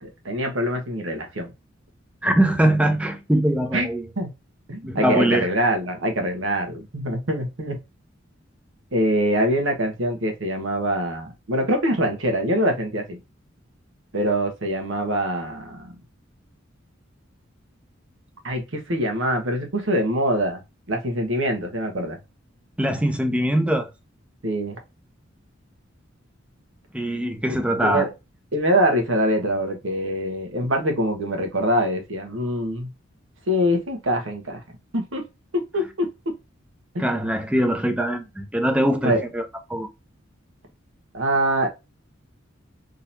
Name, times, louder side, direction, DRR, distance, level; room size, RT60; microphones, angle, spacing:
voice 1, 0.0-1.5 3.7-3.9 4.2-4.3 4.7-7.8 8.9-13.2 14.1-15.9 18.4-20.6 20.9-22.2 24.4-24.8 27.8-28.1 28.5-32.9 33.5-34.6 34.9-35.2 35.5-36.1 36.9-37.1 39.0-39.2 41.1-41.7, equal, 80° right, 1.2 m, -24 dB
voice 2, 2.2-4.1 4.8-5.5 22.8-23.9 26.9-28.1 37.0-39.9, right 1 dB, 5° right, 0.6 m, -22 dB
3.8 x 2.9 x 2.5 m
head